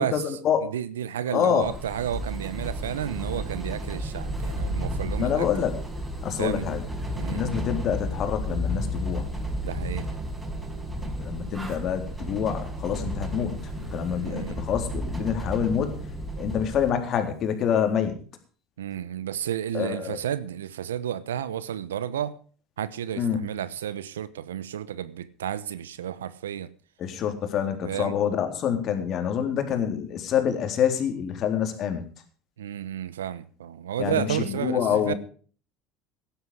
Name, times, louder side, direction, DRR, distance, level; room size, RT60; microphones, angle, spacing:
voice 1, 0.0-5.5 6.4-6.8 7.1-7.5 9.6-10.2 14.2-14.6 18.8-22.4 22.8-26.7 27.8-28.2 32.6-35.1, right 10 dB, 85° right, 1.0 m, -32 dB
voice 2, 1.3-1.7 5.2-5.7 6.2-6.8 7.3-9.3 11.0-15.9 16.4-18.2 19.7-20.2 23.2-23.4 27.0-32.0 34.0-35.2, left 8 dB, 50° left, 3.7 m, -26 dB
sound 1, 1.6-16.9, equal, 15° right, 5.2 m, -32 dB
16.5 x 11.5 x 4.9 m
hypercardioid pair, 75°, 0 cm